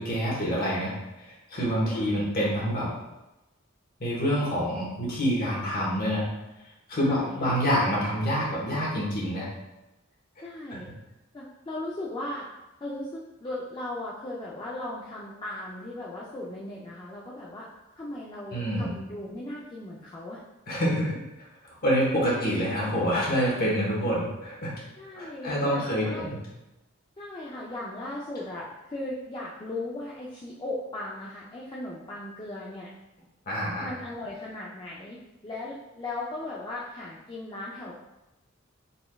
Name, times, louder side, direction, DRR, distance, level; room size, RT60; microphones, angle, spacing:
voice 1, 0.0-2.9 4.0-6.3 6.9-9.5 18.5-18.9 20.7-21.1 21.8-24.7 25.1-26.4 33.5-33.9, equal, 45° left, -5 dB, 1.2 m, -27 dB
voice 2, 0.5-1.0 1.9-2.3 7.0-7.5 10.4-10.9 11.3-12.5 12.8-17.7 18.0-20.4 22.3-22.6 25.0-26.3 27.2-32.9 33.8-37.9, left 1 dB, 20° left, -5 dB, 0.4 m, -37 dB
4.0 x 3.4 x 2.3 m, 0.98 s
head